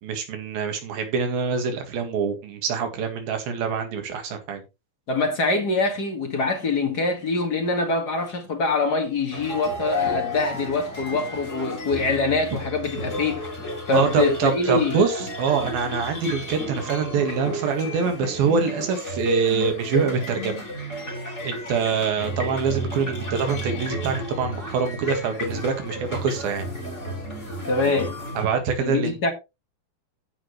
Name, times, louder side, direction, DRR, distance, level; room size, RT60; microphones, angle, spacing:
voice 1, 0.0-4.6 13.9-20.6 21.4-26.7 28.4-29.2, right 6 dB, 85° right, 3.7 m, -25 dB
voice 2, 5.1-13.4 13.9-15.0 27.7-28.1 28.8-29.3, left 3 dB, 35° left, 1.7 m, -24 dB
sound 1, 9.3-28.5, left 1 dB, 20° left, 4.7 m, -32 dB
15.5 x 6.2 x 3.1 m
omnidirectional pair, 4.1 m